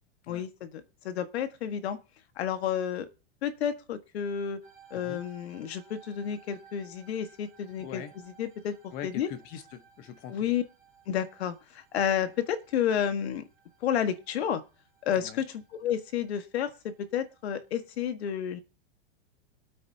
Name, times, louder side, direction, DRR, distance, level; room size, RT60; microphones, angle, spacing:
voice 1, 0.3-2.0 2.4-3.1 3.4-4.6 4.9-9.3 10.3-10.6 11.1-13.4 13.8-14.6 15.0-18.6, left 9 dB, 75° left, 1.6 m, -31 dB
sound 1, 4.6-18.1, right 8 dB, ahead, 3.9 m, -59 dB
voice 2, 7.8-8.1 8.9-10.6 15.2-15.4, left 9 dB, 30° left, 1.0 m, -42 dB
24.0 x 8.7 x 2.8 m
supercardioid pair, 170°, 32 cm